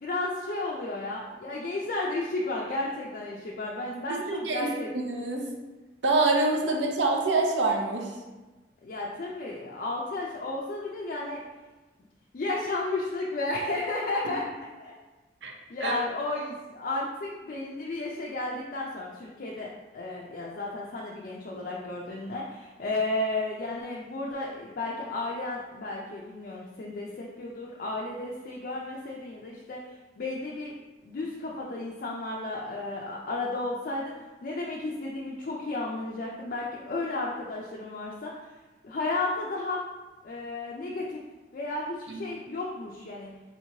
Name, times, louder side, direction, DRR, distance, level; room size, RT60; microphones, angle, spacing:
voice 1, 0.0-4.9 8.8-11.4 12.3-14.4 14.8-14.9 15.7-29.8 30.2-30.7 31.0-34.1 34.4-38.3 38.8-39.8 40.2-41.2 41.5-43.3, left 2 dB, 50° left, -4 dB, 0.4 m, -33 dB
voice 2, 4.1-4.7 4.9-5.5 6.0-8.1 15.4-15.5 15.8-16.0 42.1-42.2, right 3 dB, 80° right, 1 dB, 0.6 m, -26 dB
4.2 x 3.0 x 2.7 m, 1.2 s
head